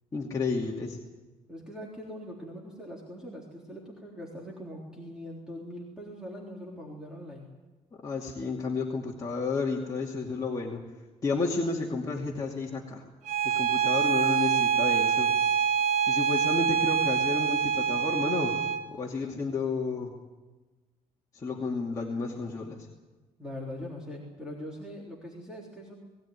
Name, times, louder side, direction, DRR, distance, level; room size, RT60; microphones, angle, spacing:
voice 1, 0.1-1.0 8.0-10.8 11.2-13.0 13.4-15.3 16.1-18.6 18.9-20.1 21.3-22.9, left 4 dB, 25° left, -3 dB, 2.5 m, -31 dB
voice 2, 1.5-7.5 23.4-25.9, equal, 5° right, -4 dB, 3.7 m, -42 dB
Bowed string instrument, 13.3-18.9, right 7 dB, 65° right, 1.8 m, -25 dB
21.0 x 17.0 x 9.7 m, 1.2 s
cardioid pair, 150°, 13 cm